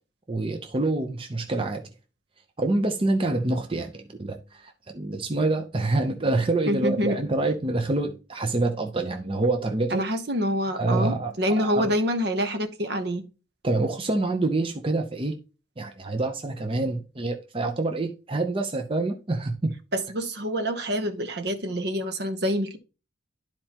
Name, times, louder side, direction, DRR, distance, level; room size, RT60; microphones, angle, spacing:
voice 1, 0.3-1.8 2.6-10.0 10.7-11.9 13.6-15.3 15.8-19.7, right 2 dB, 25° right, 0.7 m, -26 dB
voice 2, 6.7-7.2 9.9-13.2 19.9-22.8, equal, 55° right, 0.9 m, -26 dB
12.0 x 4.4 x 2.9 m
head